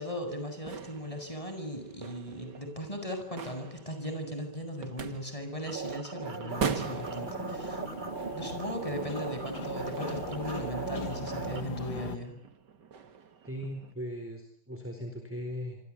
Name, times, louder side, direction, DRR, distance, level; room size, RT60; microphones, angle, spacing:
voice 1, 0.0-7.8 8.3-12.4, equal, 20° left, 6 dB, 7.6 m, -37 dB
sound 1, 0.5-13.9, right 6 dB, 80° right, 2.4 m, -42 dB
sound 2, 5.7-11.6, right 4 dB, 30° right, 1.8 m, -38 dB
sound 3, 6.5-12.2, left 6 dB, 70° left, 2.4 m, -41 dB
voice 2, 13.4-15.8, equal, 5° right, 4 dB, 4.2 m, -38 dB
27.5 x 25.0 x 8.6 m, 0.66 s
omnidirectional pair, 1.8 m